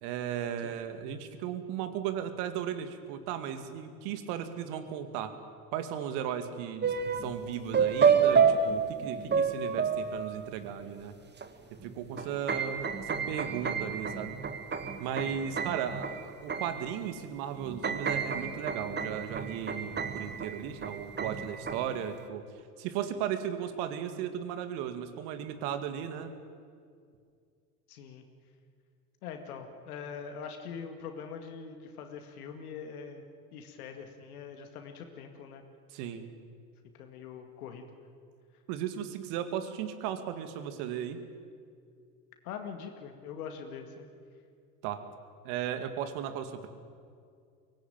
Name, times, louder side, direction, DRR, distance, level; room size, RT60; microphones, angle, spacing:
voice 1, 0.0-5.3 5.7-11.2 11.8-14.4 15.0-22.4 22.8-26.3 35.9-36.3 38.7-41.2 44.8-45.0 45.4-46.7, right 9 dB, 60° right, 9 dB, 2.3 m, -36 dB
sound 1, 6.8-7.4 7.7-10.7 11.4-11.5 11.8-17.2 17.6-22.0, right 6 dB, 20° right, 1.7 m, -29 dB
voice 2, 27.9-28.2 29.2-33.3 33.5-35.6 36.9-38.0 42.4-44.1, left 6 dB, 70° left, 5 dB, 2.2 m, -43 dB
23.5 x 18.5 x 9.0 m, 2.2 s
figure-of-eight pair, 75°, 46 cm